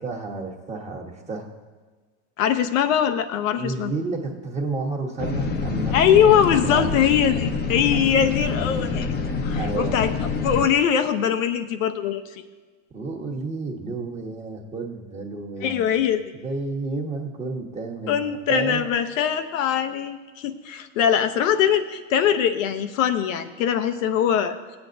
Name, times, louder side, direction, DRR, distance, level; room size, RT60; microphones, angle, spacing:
voice 1, 0.0-1.5 3.6-6.9 7.9-8.0 9.5-9.9 12.9-16.0 16.4-18.8, right 3 dB, 15° right, 1 dB, 1.2 m, -31 dB
voice 2, 2.4-3.9 5.9-9.1 9.4-10.1 10.4-12.4 15.6-16.2 18.1-24.6, left 8 dB, 80° left, 8 dB, 0.8 m, -22 dB
sound 1, 5.2-10.6, left 4 dB, 25° left, 0.7 m, -26 dB
16.0 x 8.2 x 2.6 m, 1.4 s
supercardioid pair, 120°, 39 cm